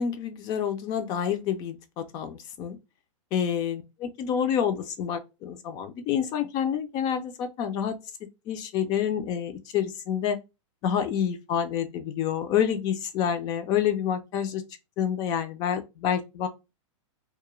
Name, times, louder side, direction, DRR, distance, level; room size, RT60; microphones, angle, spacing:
voice 1, 0.0-2.8 3.3-8.0 8.5-10.4 10.8-14.6 15.0-16.5, left 8 dB, 25° left, 0.4 m, -28 dB
2.3 x 2.1 x 2.9 m
hypercardioid pair, 150°, 17 cm